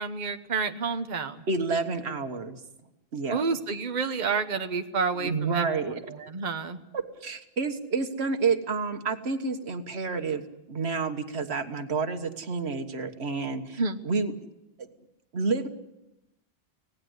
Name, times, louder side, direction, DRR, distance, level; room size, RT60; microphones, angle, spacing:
voice 1, 0.0-1.4 3.3-5.7 6.2-6.8 13.8-14.0, right 5 dB, 45° right, 7 dB, 1.2 m, -29 dB
voice 2, 1.5-2.6 3.1-3.4 5.2-6.0 6.9-10.4 10.7-14.3 15.3-15.7, right 4 dB, 90° right, 7 dB, 1.7 m, -29 dB
25.5 x 18.0 x 8.0 m, 0.90 s
omnidirectional pair, 1.1 m